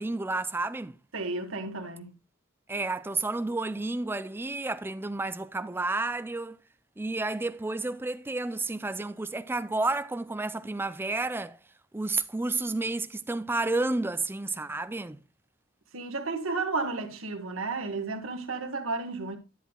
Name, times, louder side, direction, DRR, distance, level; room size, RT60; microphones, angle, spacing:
voice 1, 0.0-1.0 2.7-6.6 7.0-11.6 11.9-15.2, right 2 dB, 10° right, 0.4 m, -31 dB
voice 2, 1.1-2.1 15.9-19.4, right 3 dB, 85° right, 1.5 m, -32 dB
11.0 x 7.9 x 2.3 m
head